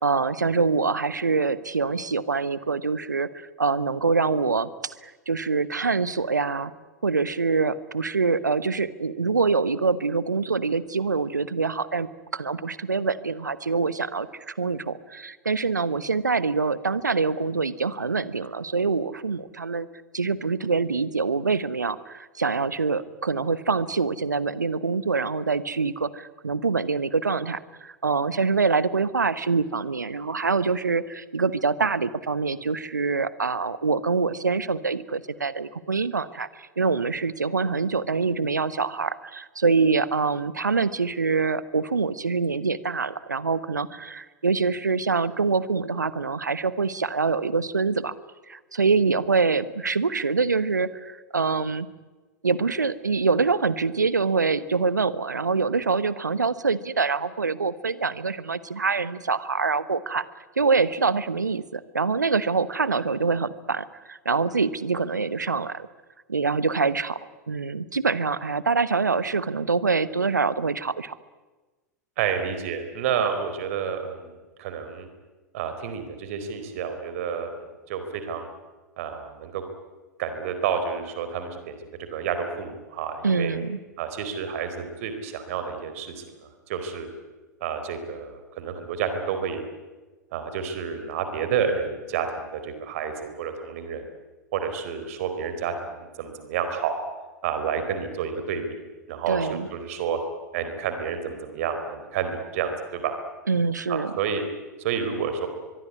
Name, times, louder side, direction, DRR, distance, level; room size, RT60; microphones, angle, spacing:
voice 1, 0.0-6.7 7.0-19.9 20.1-48.1 48.5-51.9 52.4-60.3 60.6-65.9 66.3-67.2 67.5-71.2 83.2-83.8 99.3-99.7 103.5-104.1, right 4 dB, 80° right, 17 dB, 1.1 m, -25 dB
voice 2, 72.2-74.3 74.6-75.1 75.5-78.5 79.0-79.6 80.2-83.5 84.0-87.1 87.6-89.6 90.3-94.1 94.5-96.9 97.4-98.8 99.1-100.2 100.5-103.2 103.9-104.4 104.8-105.5, right 7 dB, 50° right, 8 dB, 4.3 m, -30 dB
24.0 x 22.5 x 9.7 m, 1.2 s
figure-of-eight pair, 95°, 10 cm